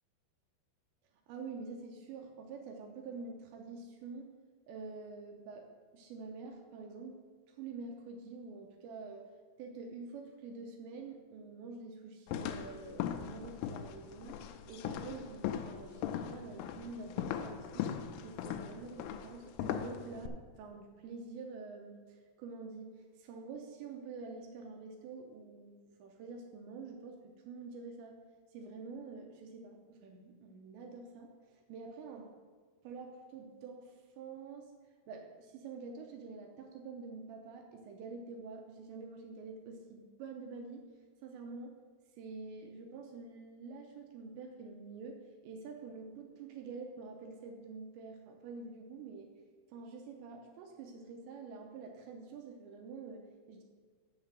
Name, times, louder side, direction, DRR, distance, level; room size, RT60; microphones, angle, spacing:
voice 1, 1.3-4.3 4.7-5.7 5.9-7.2 7.5-9.3 9.6-14.4 14.7-17.9 18.2-28.2 28.5-32.3 32.8-34.7 35.1-40.8 41.2-41.7 42.2-49.3 49.7-53.6, right 4 dB, 85° right, 3 dB, 2.7 m, -47 dB
sound 1, 12.3-20.3, left 9 dB, 85° left, 3.1 m, -39 dB
7.3 x 6.1 x 7.5 m, 1.6 s
omnidirectional pair, 5.6 m